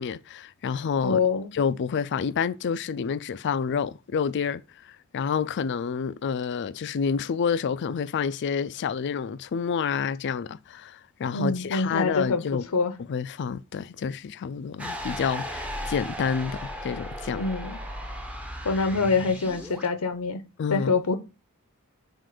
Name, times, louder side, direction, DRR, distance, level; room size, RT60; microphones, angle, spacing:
voice 1, 0.0-1.2 1.5-12.7 13.1-17.4 20.6-20.9, left 6 dB, 55° left, 0.4 m, -29 dB
voice 2, 1.0-1.5 11.3-12.5 12.7-12.9 17.4-17.8 18.6-20.4 20.7-21.2, left 4 dB, 85° left, 0.7 m, -25 dB
sound 1, 14.8-19.9, equal, 5° right, 0.8 m, -36 dB
7.5 x 2.5 x 4.9 m
head